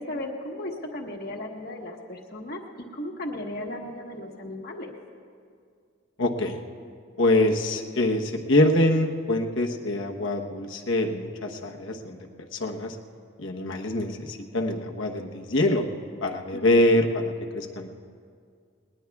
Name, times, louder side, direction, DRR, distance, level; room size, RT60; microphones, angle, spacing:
voice 1, 0.0-4.9 16.5-17.0, left 1 dB, 50° left, 2 dB, 1.3 m, -36 dB
voice 2, 6.2-6.6 7.2-12.2 12.5-12.9 13.4-15.8 16.2-17.9, left 1 dB, 75° left, 2 dB, 1.0 m, -24 dB
20.0 x 20.0 x 2.3 m, 2.2 s
head